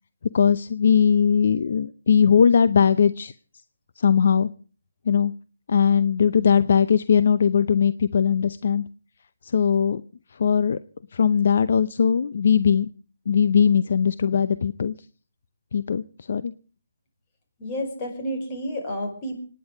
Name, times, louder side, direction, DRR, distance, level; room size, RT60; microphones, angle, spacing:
voice 1, 0.3-3.3 4.0-4.5 5.1-5.3 5.7-8.8 9.4-10.0 10.4-10.8 11.1-12.9 13.3-14.9 15.7-16.0 16.3-16.5, left 7 dB, 55° left, 15 dB, 0.7 m, -19 dB
voice 2, 17.6-19.4, equal, 25° left, 3 dB, 5.4 m, -30 dB
25.5 x 10.5 x 5.0 m, 0.39 s
hypercardioid pair, 155°, 0 cm